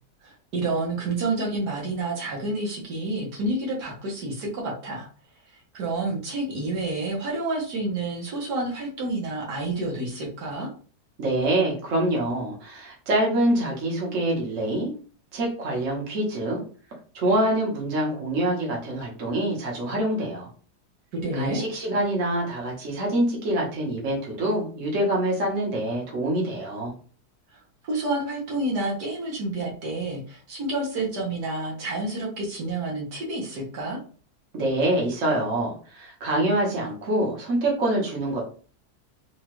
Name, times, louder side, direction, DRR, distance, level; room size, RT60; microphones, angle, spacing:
voice 1, 0.2-5.1 5.7-10.7 21.1-21.6 27.5-34.0, right 2 dB, 80° right, -2 dB, 1.8 m, -29 dB
voice 2, 11.2-14.9 15.3-16.6 17.1-20.5 21.3-26.9 34.5-38.4, right 1 dB, 50° right, -2 dB, 1.5 m, -25 dB
4.7 x 2.4 x 3.1 m, 0.40 s
omnidirectional pair, 1.7 m